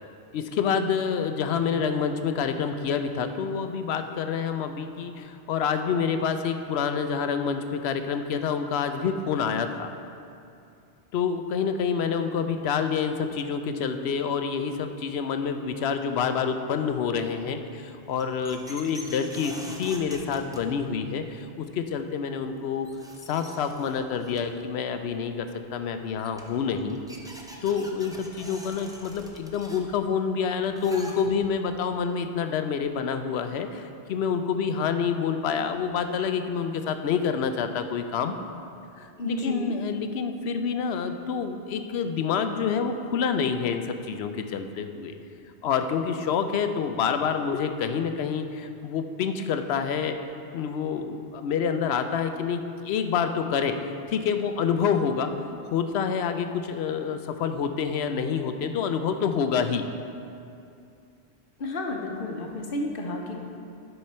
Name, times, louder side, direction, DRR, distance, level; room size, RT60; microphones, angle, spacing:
voice 1, 0.3-9.9 11.1-22.9 23.3-27.0 27.6-38.3 39.0-45.1 45.6-50.2 50.5-59.9, left 6 dB, 70° left, 8 dB, 0.8 m, -27 dB
sound 1, 18.0-21.1 22.4-22.5 22.8-24.6 25.8-25.9 26.2-31.6, equal, 5° right, 0.5 m, -45 dB
voice 2, 39.2-39.7 61.6-63.4, left 1 dB, 55° left, 1 dB, 1.1 m, -31 dB
11.0 x 5.8 x 4.3 m, 2.5 s
omnidirectional pair, 1.2 m